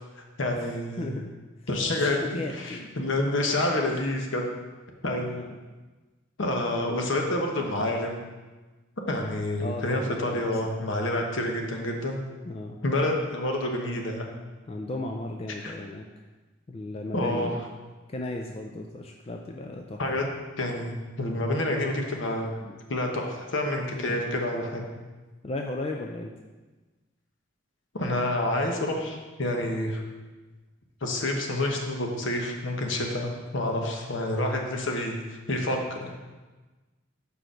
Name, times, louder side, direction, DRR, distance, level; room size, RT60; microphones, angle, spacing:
voice 1, 0.4-1.1 1.7-4.4 5.0-5.3 6.4-8.2 9.1-12.2 12.8-14.2 15.6-15.7 17.1-17.5 20.0-20.3 20.6-22.5 22.9-24.8 27.9-30.0 31.0-36.1, left 1 dB, 70° left, 2 dB, 1.0 m, -28 dB
voice 2, 1.0-1.3 1.6-1.7 2.2-2.9 5.2-5.6 9.6-10.7 12.5-12.8 14.7-16.1 16.7-17.6 18.1-20.0 22.6-22.8 23.9-24.2 25.4-26.3, left 2 dB, 30° left, 2 dB, 0.3 m, -35 dB
5.1 x 4.7 x 6.1 m, 1.2 s
head